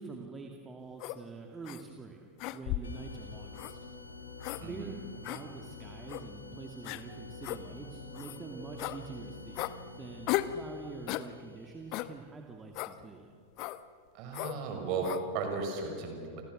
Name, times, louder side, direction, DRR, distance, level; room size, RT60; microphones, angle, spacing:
voice 1, 0.0-3.8 4.6-5.0 5.3-9.7 10.0-13.3, right 4 dB, 15° right, 2 dB, 2.4 m, -46 dB
sound 1, 1.0-1.2 1.6-1.8 2.4-3.0 3.6-3.7 4.4-4.6 5.2-5.4 6.1-6.2 6.8-7.0 7.4-7.6 8.1-8.4 8.8-9.0 9.6-9.7 10.3-10.6 11.1-11.3 11.9-12.1 12.7-12.9 13.6-13.8 14.3-14.6 15.0-15.2, left 17 dB, 40° left, 1.0 m, -35 dB
sound 2, 2.8-12.2, left 4 dB, 75° left, 2.8 m, -48 dB
voice 2, 4.6-4.9 14.1-16.4, right 4 dB, 40° right, 4 dB, 6.2 m, -35 dB
sound 3, 7.0-11.6, right 4 dB, 70° right, 7.3 m, -53 dB
30.0 x 25.5 x 6.6 m, 2.2 s
figure-of-eight pair, 90°, 0 cm